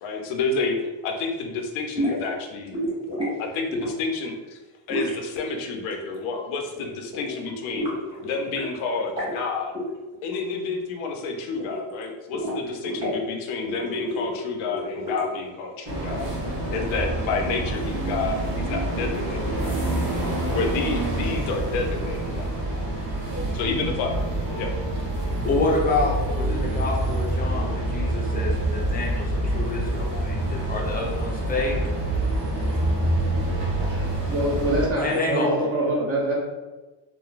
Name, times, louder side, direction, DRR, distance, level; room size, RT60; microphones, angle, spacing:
voice 1, 0.0-2.8 3.0-3.1 3.4-4.6 4.9-7.9 8.2-9.7 10.2-16.3 16.7-19.9 20.5-22.5 23.5-24.1 24.6-24.7, left 4 dB, 85° left, 2 dB, 0.6 m, -29 dB
sound 1, 1.9-2.3 2.7-3.3 3.7-4.1 4.9-6.3 6.6-6.9 7.1-8.7 8.9-9.4 9.7-10.6 10.9-12.0 12.3-13.2 13.6-15.4, equal, 10° right, 1.3 m, -30 dB
sound 2, 15.9-34.9, right 1 dB, 60° right, 1.0 m, -26 dB
voice 2, 25.4-31.7 35.0-35.5, left 3 dB, 20° left, -2 dB, 0.5 m, -28 dB
voice 3, 34.3-36.3, right 1 dB, 30° right, -4 dB, 0.7 m, -24 dB
3.0 x 2.1 x 2.4 m, 1.2 s
cardioid pair, 135°, 47 cm